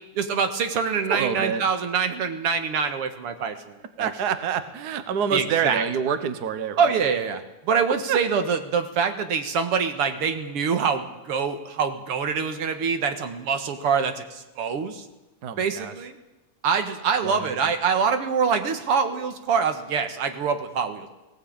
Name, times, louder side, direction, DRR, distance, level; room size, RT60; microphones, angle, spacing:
voice 1, 0.1-4.1 5.3-5.8 6.8-15.0 15.6-16.2 16.6-21.1, right 6 dB, 55° right, 7 dB, 2.1 m, -25 dB
voice 2, 1.1-1.6 4.0-7.1 8.1-8.2 15.4-15.9 17.2-17.6, right 7 dB, 85° right, 11 dB, 0.8 m, -27 dB
18.5 x 17.5 x 8.8 m, 1.0 s
omnidirectional pair, 3.6 m